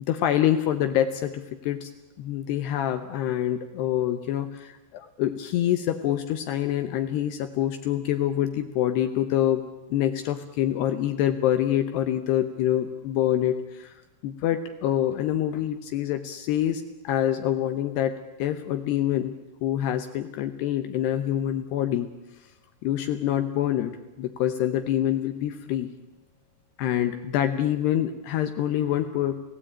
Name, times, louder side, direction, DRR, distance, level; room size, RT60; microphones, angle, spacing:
voice 1, 0.1-1.9 2.2-9.6 9.9-13.9 14.2-19.3 19.6-22.1 22.8-23.9 24.2-25.9 26.8-29.4, left 11 dB, 75° left, 8 dB, 2.9 m, -26 dB
29.0 x 17.5 x 8.8 m, 1.0 s
omnidirectional pair, 5.1 m